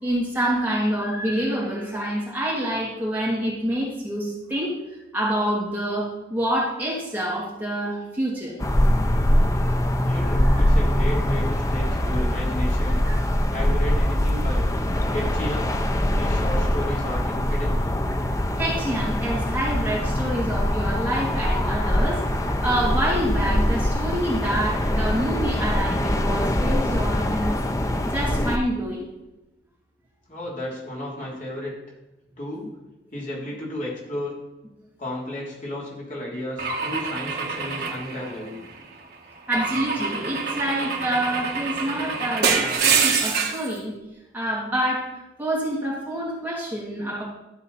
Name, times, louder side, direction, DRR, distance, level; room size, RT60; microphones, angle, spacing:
voice 1, 0.0-4.7 5.1-8.5 10.2-10.3 13.0-13.1 13.4-13.5 15.0-15.1 18.6-27.6 28.0-29.0 39.5-44.0 44.3-45.0 45.4-47.2, right 1 dB, 10° right, -6 dB, 2.7 m, -27 dB
sound 1, 8.6-28.6, left 1 dB, 20° left, 0.6 m, -23 dB
voice 2, 10.0-13.0 13.5-14.7 15.1-15.7 16.1-17.9 30.3-31.7 32.4-32.7 33.1-34.3 35.0-38.6, left 1 dB, 45° left, -4 dB, 3.3 m, -33 dB
Car / Engine / Glass, 36.6-38.8 39.5-43.7, right 5 dB, 55° right, 1.6 m, -26 dB
13.0 x 7.2 x 4.2 m, 0.96 s
head